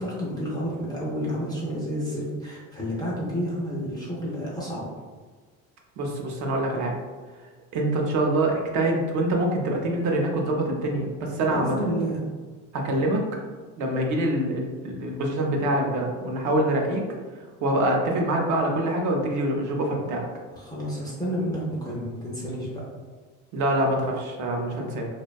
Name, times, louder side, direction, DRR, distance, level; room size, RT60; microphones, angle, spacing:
voice 1, 0.0-4.8 11.5-12.2 20.5-22.8 24.7-24.9, equal, 10° left, -6 dB, 0.3 m, -30 dB
voice 2, 6.0-6.9 7.7-11.7 12.7-13.2 13.8-17.0 17.6-20.2 23.5-25.1, right 1 dB, 55° right, 1 dB, 0.6 m, -25 dB
2.6 x 2.1 x 2.2 m, 1.4 s
cardioid pair, 135°, 35 cm